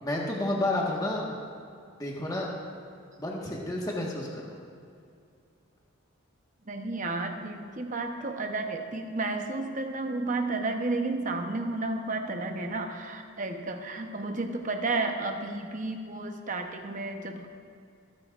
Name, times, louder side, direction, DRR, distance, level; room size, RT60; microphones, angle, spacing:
voice 1, 0.0-1.4 2.0-2.5 3.2-4.5, left 1 dB, 20° left, -3 dB, 1.5 m, -30 dB
voice 2, 6.7-17.5, right 2 dB, 40° right, 4 dB, 1.0 m, -32 dB
23.5 x 10.0 x 2.5 m, 2.4 s
head